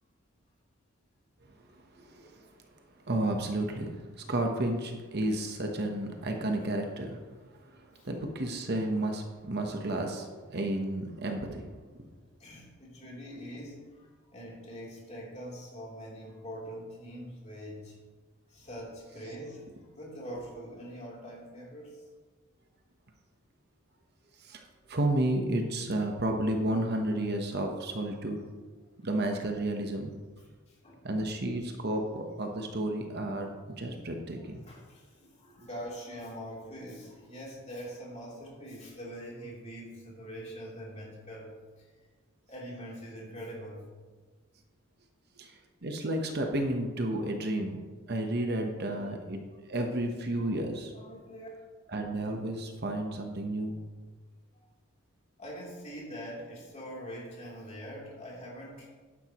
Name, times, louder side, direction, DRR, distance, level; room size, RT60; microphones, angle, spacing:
voice 1, 2.0-2.5 3.1-7.2 7.7-11.6 11.9-12.0 24.4-24.6 24.9-28.4 29.0-30.1 31.0-33.5 33.8-34.6 45.4-47.8 48.1-49.4 49.7-50.9 51.9-53.8, right 1 dB, 50° right, 3 dB, 1.1 m, -32 dB
voice 2, 12.4-18.0 18.5-22.1 30.7-31.1 34.3-41.5 41.8-41.9 42.5-43.9 48.8-49.0 50.9-51.5 54.5-54.7 55.4-58.9, equal, 30° left, -5 dB, 3.3 m, -44 dB
12.0 x 10.5 x 3.1 m, 1.4 s
head